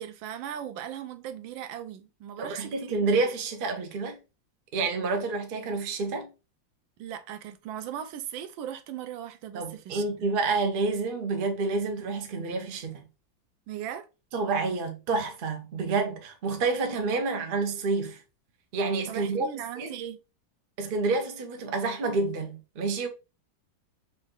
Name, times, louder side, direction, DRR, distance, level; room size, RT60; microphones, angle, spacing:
voice 1, 0.0-3.1 7.0-10.3 13.7-14.1 19.1-20.2, right 10 dB, 85° right, 1.3 m, -38 dB
voice 2, 2.4-4.2 4.7-6.3 9.5-13.0 14.3-18.2 18.7-19.5 19.8-19.9 20.8-23.1, right 3 dB, 55° right, 0.6 m, -28 dB
4.2 x 2.6 x 3.7 m
omnidirectional pair, 2.1 m